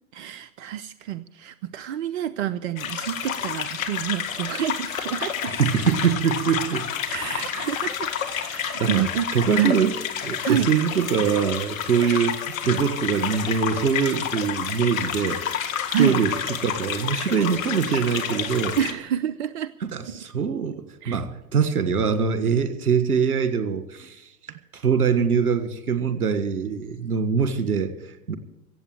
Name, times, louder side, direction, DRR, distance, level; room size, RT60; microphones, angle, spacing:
voice 1, 0.1-5.8 7.1-9.3 9.5-9.8 10.4-10.7 15.9-16.2 18.8-19.7 20.1-20.2 21.0-21.2, right 10 dB, 50° right, 15 dB, 0.7 m, -28 dB
sound 1, 2.8-18.9, left 8 dB, 65° left, 1.8 m, -30 dB
voice 2, 5.5-6.9 8.8-9.0 9.3-9.9 10.2-12.4 12.6-15.4 16.0-16.3 16.6-18.8 19.9-24.2 24.7-28.4, right 6 dB, 75° right, 11 dB, 1.7 m, -23 dB
16.5 x 7.9 x 8.8 m, 0.91 s
figure-of-eight pair, 95°, 45 cm